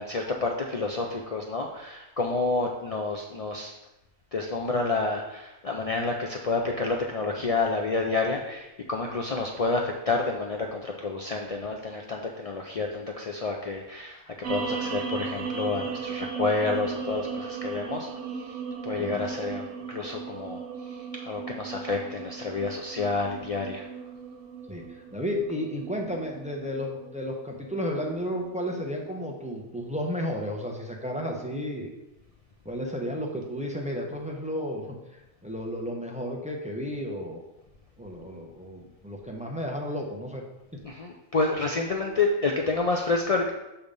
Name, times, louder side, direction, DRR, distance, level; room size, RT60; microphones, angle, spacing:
voice 1, 0.0-3.7 4.3-18.1 18.4-18.6 18.8-20.6 20.9-23.8 40.8-43.5, left 3 dB, 70° left, 1 dB, 0.3 m, -29 dB
sound 1, 14.4-29.0, right 5 dB, 75° right, 1.0 m, -37 dB
voice 2, 24.7-31.9 32.6-35.0 35.4-37.4 38.0-40.4, equal, 5° right, -1 dB, 0.6 m, -33 dB
7.0 x 3.4 x 5.2 m, 0.94 s
omnidirectional pair, 1.4 m